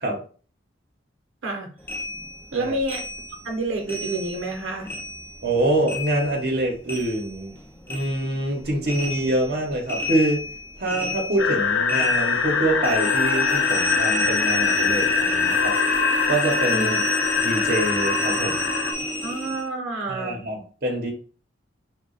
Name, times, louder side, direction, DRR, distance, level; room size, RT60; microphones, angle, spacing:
sound 1, 1.9-4.6 4.9-7.6 7.9-19.7, left 1 dB, 10° left, 0.4 m, -30 dB
voice 1, 2.5-3.0 3.4-4.9 16.7-17.0 19.2-20.4, right 2 dB, 90° right, 1 dB, 0.8 m, -28 dB
voice 2, 5.4-7.6 7.9-10.4 10.8-15.8 16.3-16.9 17.4-18.7 20.1-21.1, right 1 dB, 50° right, 0 dB, 1.0 m, -25 dB
sound 2, 11.4-18.9, left 6 dB, 90° left, 0.6 m, -23 dB
3.0 x 2.4 x 3.8 m, 0.39 s
head